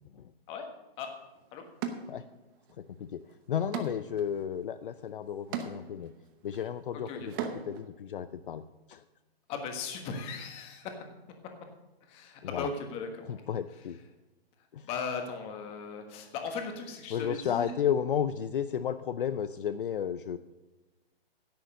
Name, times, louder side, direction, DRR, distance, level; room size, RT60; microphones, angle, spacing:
sound 1, 1.0-1.1 1.8-2.7 3.1-7.9, right 7 dB, 20° right, 0.8 m, -40 dB
voice 1, 2.8-3.2 3.5-6.1 6.4-7.3 7.7-8.6 8.9-9.0 12.4-12.7 13.3-14.0 14.7-14.9 17.1-20.4, left 8 dB, 60° left, 12 dB, 0.6 m, -33 dB
voice 2, 9.5-11.0 12.0-13.3 14.8-17.7, left 5 dB, 20° left, 5 dB, 1.4 m, -37 dB
10.5 x 7.9 x 6.5 m, 1.1 s
hypercardioid pair, 155°, 31 cm